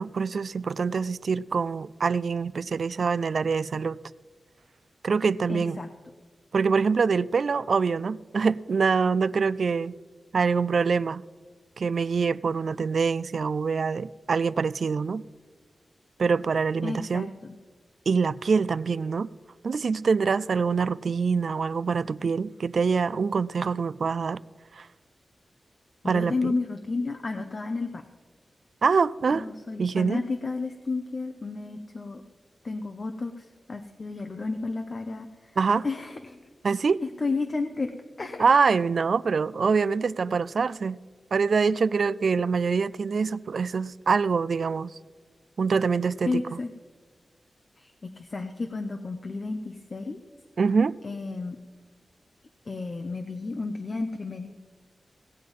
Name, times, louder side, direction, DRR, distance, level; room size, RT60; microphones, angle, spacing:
voice 1, 0.0-4.0 5.0-5.8 6.5-9.9 10.3-11.2 11.8-15.2 16.2-17.3 18.1-19.3 19.6-24.4 24.7-24.9 26.1-26.5 28.8-29.4 29.8-30.2 35.6-35.9 36.6-37.0 38.4-41.0 41.3-44.9 45.6-46.4 50.6-50.9, right 5 dB, 70° right, 0.3 m, -25 dB
voice 2, 5.5-5.9 16.8-17.6 26.0-28.1 29.3-32.2 32.6-35.6 35.8-36.5 37.0-38.5 46.3-46.7 47.8-50.2 51.0-51.6 52.6-54.5, left 3 dB, 50° left, 0.8 m, -32 dB
17.5 x 7.6 x 5.4 m
wide cardioid pair, 80°, 0 cm